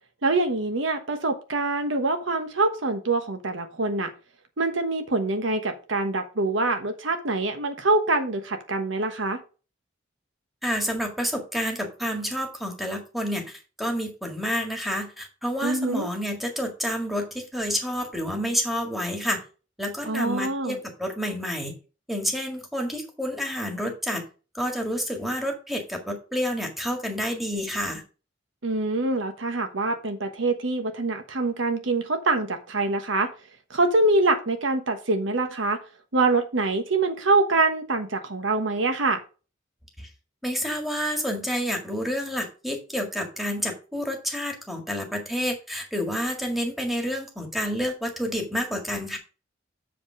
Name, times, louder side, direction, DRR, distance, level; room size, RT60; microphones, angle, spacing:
voice 1, 0.2-4.1 4.6-9.4 15.6-16.1 20.1-20.8 28.6-33.3 33.7-35.8 36.1-39.2, right 2 dB, 75° right, 7 dB, 1.2 m, -25 dB
voice 2, 10.6-19.4 19.8-21.7 22.1-24.2 24.5-28.0 40.0-40.1 40.4-49.2, equal, ahead, 2 dB, 1.8 m, -29 dB
7.1 x 5.1 x 5.0 m, 0.34 s
head